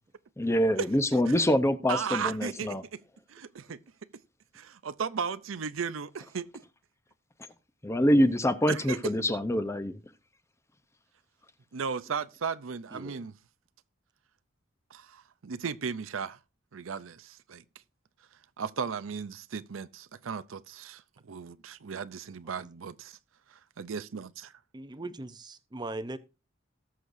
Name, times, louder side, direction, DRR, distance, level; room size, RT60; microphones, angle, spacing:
voice 1, 0.4-2.8 7.8-10.0, equal, 15° left, 0.7 m, -25 dB
voice 2, 1.9-3.0 3.3-3.8 4.5-6.5 8.7-9.1 11.7-13.3 14.9-16.4 16.7-17.6 18.6-23.2 23.5-24.5, right 6 dB, 90° right, 0.6 m, -36 dB
voice 3, 12.9-13.2 22.6-22.7 24.7-26.2, right 2 dB, 20° right, 0.7 m, -39 dB
19.0 x 6.5 x 2.6 m
head